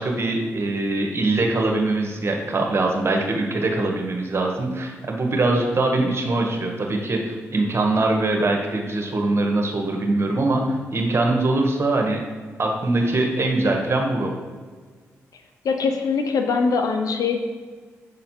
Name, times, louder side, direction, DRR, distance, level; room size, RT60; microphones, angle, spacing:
voice 1, 0.0-12.2 12.6-14.3, right 2 dB, 40° right, 1 dB, 1.4 m, -22 dB
voice 2, 15.6-17.4, left 5 dB, 65° left, 5 dB, 0.7 m, -22 dB
6.5 x 4.1 x 4.5 m, 1.5 s
hypercardioid pair, 40°, 6 cm